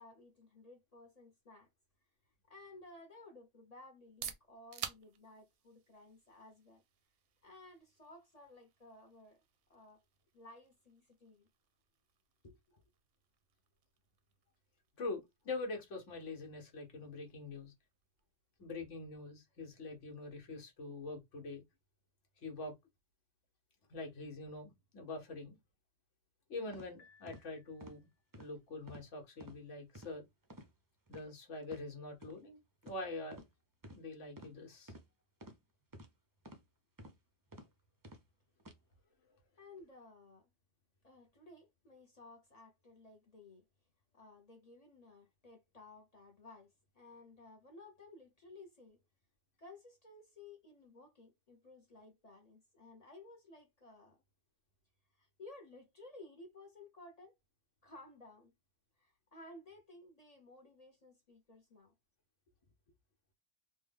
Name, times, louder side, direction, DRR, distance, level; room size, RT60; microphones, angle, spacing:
voice 1, 0.0-1.7 2.5-6.8 7.4-9.4 9.7-10.0 10.3-11.5 12.4-12.6 39.6-40.5 41.0-43.7 44.1-49.0 49.6-54.2 55.1-57.4 57.8-58.5 59.0-61.9, left 2 dB, 40° left, 0.7 m, -56 dB
sound 1, 3.9-19.6, right 8 dB, 65° right, 0.7 m, -54 dB
voice 2, 15.0-17.7 18.6-21.6 22.4-22.7 23.9-25.6 26.5-28.1 28.4-30.2 31.1-33.4 33.9-34.9, left 3 dB, 80° left, 1.4 m, -44 dB
sound 2, 26.7-26.9 27.3-27.4 27.8-28.0 28.3-28.5 28.9-29.1 29.4-29.6 29.9-30.1 30.5-30.7 31.1-31.2 31.6-31.8 32.2-32.3 32.8-33.0 33.3-33.5 33.8-34.0 34.4-34.5 34.9-35.0 35.4-35.6 35.9-36.1 36.4-36.6 37.0-37.2 37.5-37.7 38.0-38.2 38.6-38.8, equal, 35° right, 0.3 m, -52 dB
Piano, 27.0-28.3, left 5 dB, 55° left, 1.4 m, -67 dB
3.3 x 2.2 x 3.4 m
omnidirectional pair, 1.2 m